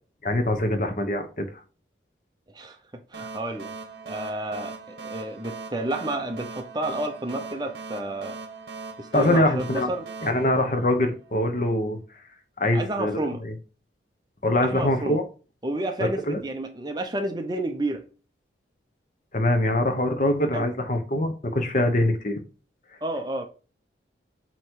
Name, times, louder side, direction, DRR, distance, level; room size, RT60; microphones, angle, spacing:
voice 1, 0.2-1.5 9.1-9.9 10.2-12.0 12.6-13.1 13.4-13.5 14.4-15.2 16.0-16.4 19.3-22.4, left 1 dB, 40° left, 1.0 m, -23 dB
voice 2, 3.1-3.7 4.0-8.4 9.0-10.0 12.7-13.4 14.6-15.2 15.6-18.0 20.5-20.7 23.0-23.5, right 1 dB, 20° right, 0.8 m, -30 dB
sound 1, 3.1-11.5, right 4 dB, 65° right, 1.5 m, -40 dB
8.1 x 3.2 x 4.6 m
head